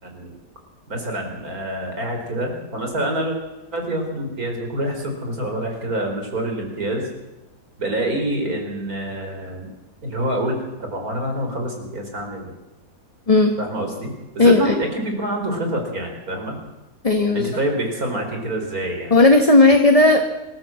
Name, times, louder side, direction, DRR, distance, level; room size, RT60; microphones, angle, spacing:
voice 1, 0.0-0.4 0.9-3.4 3.7-7.1 7.8-9.7 10.0-12.5 13.6-16.6 17.3-19.1, right 1 dB, 65° right, 3 dB, 4.6 m, -26 dB
voice 2, 13.3-13.6 14.4-14.7 17.0-17.5 19.1-20.2, left 2 dB, 25° left, 5 dB, 1.4 m, -14 dB
26.5 x 13.5 x 7.7 m, 1.0 s
omnidirectional pair, 1.7 m